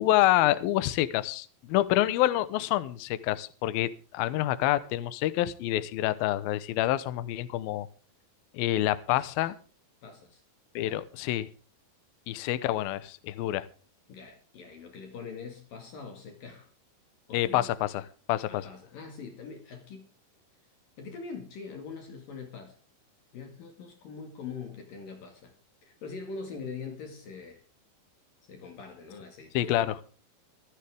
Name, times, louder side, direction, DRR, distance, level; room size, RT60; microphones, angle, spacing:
voice 1, 0.0-7.9 8.5-9.5 10.8-11.5 12.3-13.6 17.3-18.0 18.3-18.7 29.5-30.0, left 14 dB, 75° left, 2.3 m, -27 dB
voice 2, 9.1-9.5 10.0-10.4 10.8-11.0 14.1-16.7 17.3-17.7 18.5-20.1 21.0-22.8 23.3-25.5 25.8-27.6 28.4-30.0, left 5 dB, 55° left, 3.3 m, -43 dB
25.0 x 10.0 x 3.5 m
omnidirectional pair, 5.4 m